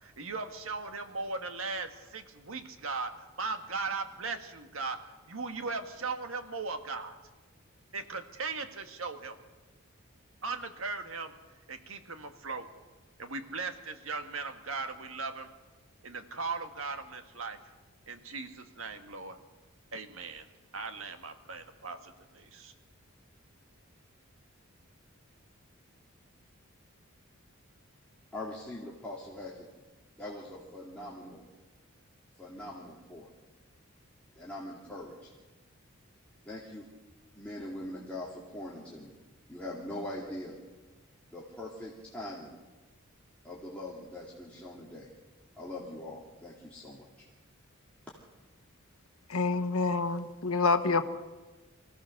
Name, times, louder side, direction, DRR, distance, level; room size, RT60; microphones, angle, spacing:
voice 1, 0.0-7.2 7.9-9.3 10.4-11.3 11.7-12.7 13.2-15.5 16.0-17.6 18.1-19.4 19.9-20.4 20.7-22.7, right 4 dB, 70° right, 7 dB, 1.7 m, -38 dB
voice 2, 28.3-29.7 30.2-31.4 32.4-33.3 34.4-35.3 36.4-36.9 37.4-39.2 39.5-40.6 41.3-42.5 43.4-45.1 45.6-47.3, left 1 dB, 5° left, -6 dB, 2.4 m, -42 dB
voice 3, 49.3-51.0, left 3 dB, 80° left, 9 dB, 1.3 m, -27 dB
25.0 x 16.0 x 6.6 m, 1.2 s
head